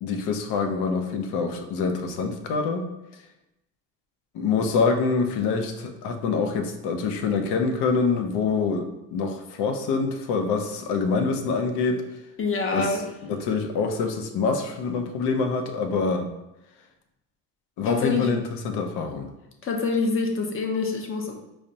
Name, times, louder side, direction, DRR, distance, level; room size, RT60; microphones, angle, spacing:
voice 1, 0.0-3.2 4.3-12.2 12.7-13.0 13.2-16.3 17.8-19.3, left 4 dB, 70° left, 5 dB, 0.6 m, -26 dB
voice 2, 12.4-13.0 17.8-18.3 19.6-21.3, left 4 dB, 30° left, 2 dB, 0.6 m, -26 dB
4.7 x 2.0 x 2.7 m, 0.94 s
cardioid pair, 105°, 42 cm